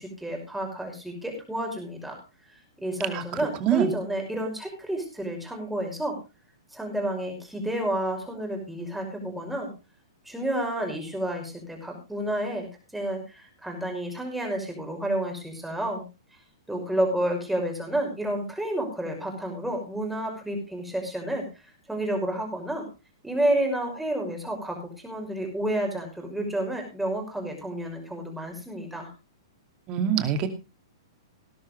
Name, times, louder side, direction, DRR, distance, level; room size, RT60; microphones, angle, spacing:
voice 1, 0.0-2.2 2.8-6.2 6.7-9.7 10.3-16.0 16.7-22.9 23.2-29.1, right 1 dB, 5° right, 2 dB, 5.7 m, -30 dB
voice 2, 29.9-30.5, right 9 dB, 35° right, 8 dB, 2.5 m, -24 dB
18.5 x 12.0 x 3.3 m, 0.28 s
hypercardioid pair, 115°, 2 cm